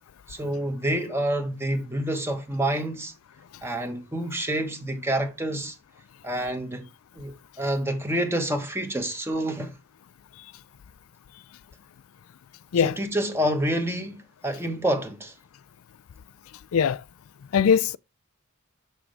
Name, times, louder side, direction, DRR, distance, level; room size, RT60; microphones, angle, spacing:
voice 1, 0.3-3.1 3.6-5.7 6.2-6.8 7.1-9.8 12.8-15.3, right 1 dB, 10° right, 1.3 m, -28 dB
voice 2, 16.7-17.0 17.5-18.0, left 7 dB, 70° left, 0.4 m, -21 dB
6.2 x 6.1 x 3.3 m
head